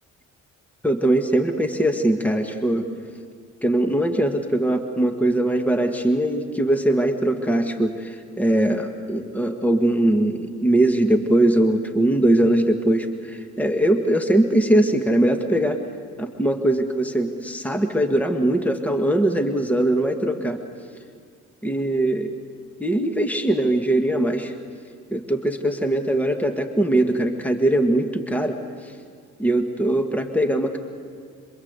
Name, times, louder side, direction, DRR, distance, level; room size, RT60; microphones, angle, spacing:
voice 1, 0.8-2.9 3.6-15.8 16.2-20.6 21.6-22.3 22.8-24.5 25.1-28.6 28.8-28.9 29.4-30.8, right 1 dB, 5° left, 5 dB, 1.6 m, -21 dB
26.5 x 23.5 x 8.1 m, 2.1 s
cardioid pair, 90°, 30 cm